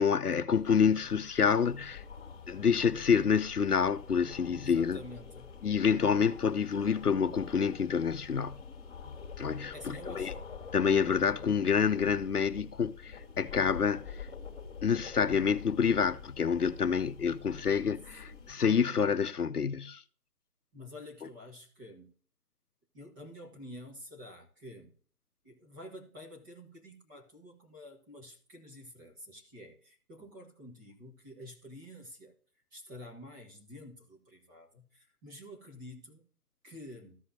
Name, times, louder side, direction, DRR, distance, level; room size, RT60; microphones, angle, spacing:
voice 1, 0.0-2.0 2.5-5.0 5.6-8.6 9.4-10.3 10.7-14.3 14.8-20.0, left 6 dB, 80° left, 0.7 m, -28 dB
sound 1, 0.5-18.5, left 5 dB, 25° left, 2.7 m, -47 dB
voice 2, 4.5-5.5 9.7-10.4 20.7-22.1 22.9-24.9 25.4-32.3 32.7-36.2 36.6-37.2, left 1 dB, 15° right, 1.6 m, -49 dB
14.5 x 5.6 x 2.7 m
figure-of-eight pair, 150°, 46 cm